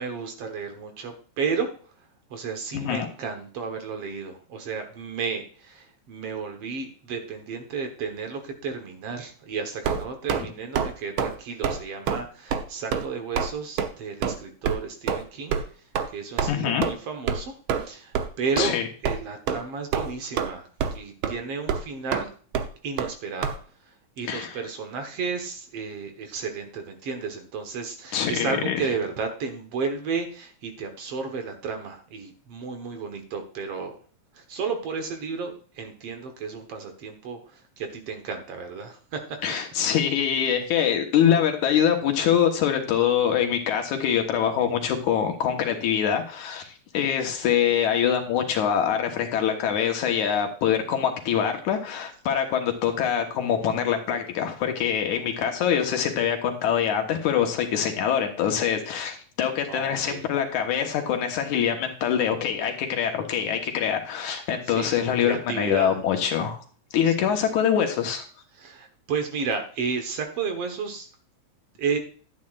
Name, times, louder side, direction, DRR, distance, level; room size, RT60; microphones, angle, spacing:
voice 1, 0.0-1.7 2.3-18.8 19.0-22.3 22.8-23.5 23.8-34.0 34.3-39.4 59.7-60.3 64.7-66.0 67.0-67.3 68.5-71.1 71.8-72.0, right 5 dB, 60° right, 6 dB, 2.0 m, -33 dB
voice 2, 2.7-3.1 16.5-16.9 18.6-18.9 24.3-24.6 28.1-28.8 39.4-66.6 66.9-68.2, left 8 dB, 75° left, 4 dB, 2.5 m, -24 dB
sound 1, 9.8-10.4 10.7-10.9 11.2-11.4 11.6-11.8 12.1-12.2 12.5-12.6 12.9-13.1 13.4-13.5 13.8-13.9 14.2-14.4 14.6-14.8 15.1-15.2 15.5-15.6 15.9-16.1 16.4-16.5 16.8-16.9 17.3-17.4 17.7-17.9 18.1-18.3 18.6-18.7 19.0-19.2 19.5-19.6 19.9-20.5 20.8-21.0 21.2-21.3 21.7-21.8 22.1-22.2 22.5-22.7 23.0-23.1 23.4-23.5, right 7 dB, 85° right, 1.1 m, -26 dB
11.5 x 9.7 x 2.4 m, 0.42 s
omnidirectional pair, 3.6 m